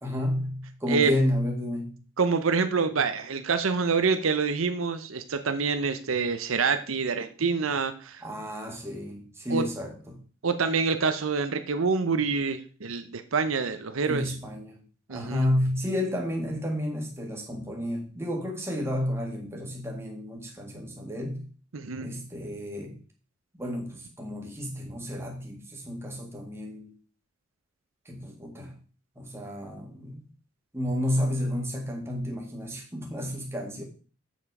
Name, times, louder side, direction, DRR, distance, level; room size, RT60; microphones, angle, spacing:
voice 1, 0.0-2.0 8.2-10.2 14.0-14.8 15.1-21.5 22.0-23.0 23.6-26.9 28.1-28.7 29.2-30.3 30.7-33.8, left 1 dB, 10° right, 0 dB, 1.9 m, -31 dB
voice 2, 2.2-8.2 9.5-9.6 10.4-14.3 15.1-15.4 21.7-22.1, right 5 dB, 80° right, 9 dB, 0.7 m, -26 dB
7.4 x 7.3 x 4.8 m, 0.39 s
head